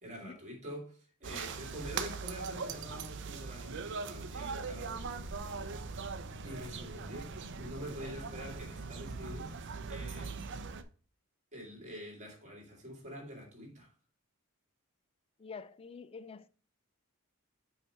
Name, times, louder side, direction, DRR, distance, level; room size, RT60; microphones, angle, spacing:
voice 1, 0.0-5.1 6.4-9.6 9.9-10.4 11.5-13.9, equal, 35° right, 2.5 m, -46 dB
sound 1, 1.2-10.8, right 4 dB, 55° right, 0.6 m, -40 dB
voice 2, 15.4-16.5, left 5 dB, 25° left, 0.4 m, -47 dB
5.7 x 4.8 x 4.4 m
head